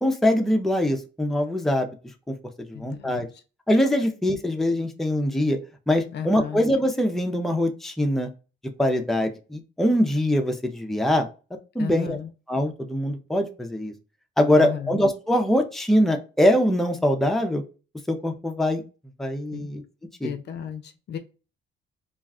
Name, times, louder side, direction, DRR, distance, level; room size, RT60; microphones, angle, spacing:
voice 1, 0.0-1.9 2.3-2.4 2.7-3.3 3.7-5.6 5.9-8.3 8.8-11.3 11.7-12.2 12.5-13.9 14.4-17.6 18.1-18.8 19.2-19.8 20.2-20.3, left 1 dB, ahead, 4 dB, 0.5 m, -23 dB
voice 2, 2.7-3.3 6.1-6.6 11.8-12.3 14.5-15.0 19.5-19.7 20.2-21.2, left 8 dB, 60° left, 8 dB, 0.5 m, -34 dB
2.4 x 2.2 x 3.6 m, 0.33 s
cardioid pair, 90°, 20 cm